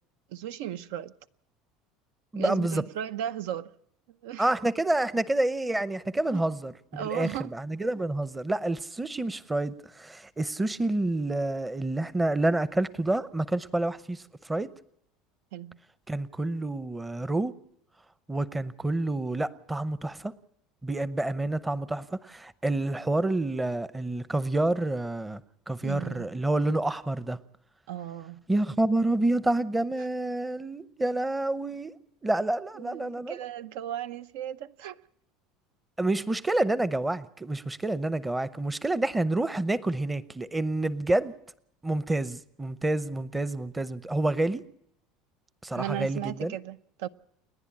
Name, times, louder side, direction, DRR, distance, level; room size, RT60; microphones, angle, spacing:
voice 1, 0.3-1.1 2.3-3.7 4.2-4.5 6.3-6.4 6.9-7.5 15.5-15.8 25.8-26.3 27.9-28.4 32.8-35.0 45.7-47.1, right 11 dB, 80° right, 0.7 m, -36 dB
voice 2, 2.3-2.8 4.4-14.7 16.1-17.5 18.3-20.3 20.8-25.4 25.7-27.4 28.5-31.9 32.2-33.4 36.0-41.3 41.8-44.6 45.6-46.5, right 2 dB, 10° right, 0.7 m, -28 dB
30.0 x 10.5 x 8.6 m
cardioid pair, 145°, 0 cm